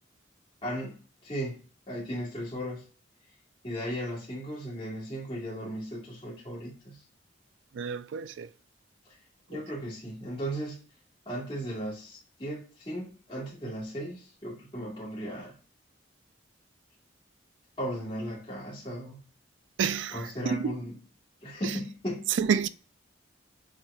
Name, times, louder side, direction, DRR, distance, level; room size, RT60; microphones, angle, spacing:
voice 1, 0.6-2.8 3.6-7.0 9.5-10.8 11.3-15.6 17.8-19.2 20.1-21.0 21.4-22.4, equal, 30° left, 1.9 m, -36 dB
voice 2, 7.7-8.5 9.5-9.6 19.8-20.7 21.6-21.8 22.3-22.7, right 7 dB, 75° right, 0.3 m, -29 dB
7.3 x 2.9 x 2.3 m
head